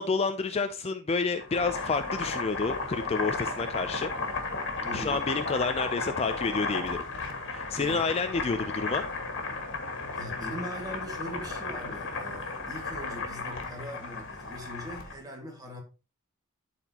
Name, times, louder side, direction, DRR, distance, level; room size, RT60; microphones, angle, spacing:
voice 1, 0.0-4.1 4.9-7.0 7.5-9.0, left 4 dB, 25° left, 0.4 m, -29 dB
Boiling, 1.3-15.2, left 3 dB, 55° left, 1.7 m, -34 dB
voice 2, 4.8-5.2 7.8-8.0 10.1-15.8, equal, 15° right, 1.9 m, -41 dB
sound 1, 6.2-12.5, left 2 dB, 80° left, 1.1 m, -49 dB
12.0 x 4.3 x 2.9 m
head